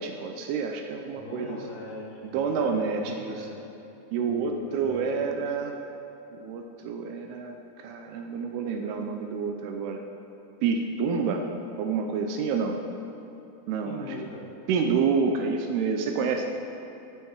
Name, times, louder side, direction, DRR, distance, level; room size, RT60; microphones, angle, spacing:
voice 1, 0.0-1.6 2.2-3.5 4.1-5.8 6.4-10.0 10.6-11.5 11.8-12.8 13.7-14.1 14.7-16.5, right 5 dB, 80° right, 4 dB, 2.5 m, -28 dB
voice 2, 1.0-3.5 4.2-5.3 13.8-14.5, left 1 dB, 60° left, -4 dB, 3.0 m, -41 dB
14.0 x 6.5 x 4.7 m, 3.0 s
omnidirectional pair, 4.9 m